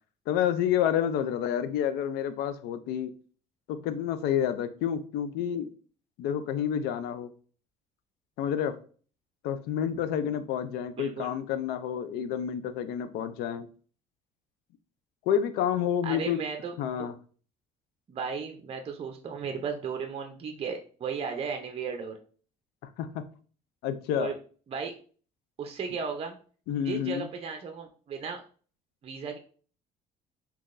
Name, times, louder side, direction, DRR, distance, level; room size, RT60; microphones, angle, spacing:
voice 1, 0.3-3.1 3.7-5.7 6.2-7.3 8.4-8.8 9.4-13.7 15.3-16.4 16.8-17.1 23.0-23.2 23.8-24.3 26.7-27.3, left 9 dB, 80° left, 11 dB, 0.4 m, -29 dB
voice 2, 10.9-11.3 16.0-17.1 18.1-22.2 24.1-24.3 24.7-24.9 25.6-26.3 26.8-28.4 29.0-29.4, right 5 dB, 35° right, 4 dB, 0.6 m, -35 dB
3.7 x 2.9 x 2.5 m, 0.42 s
supercardioid pair, 75°, 17 cm